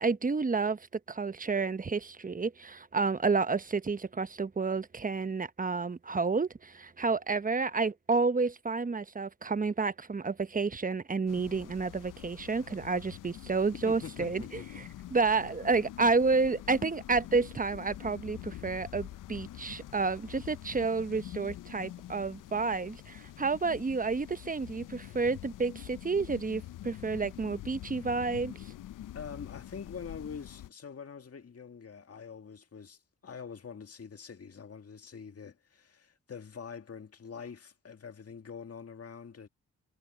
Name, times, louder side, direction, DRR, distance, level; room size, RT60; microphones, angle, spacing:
voice 1, 0.0-28.7, right 4 dB, 25° right, 1.0 m, -30 dB
sound 1, 11.3-30.7, left 13 dB, 70° left, 0.7 m, -46 dB
voice 2, 13.8-14.7 29.1-39.5, left 6 dB, 45° left, 2.1 m, -45 dB
supercardioid pair, 50°, 33 cm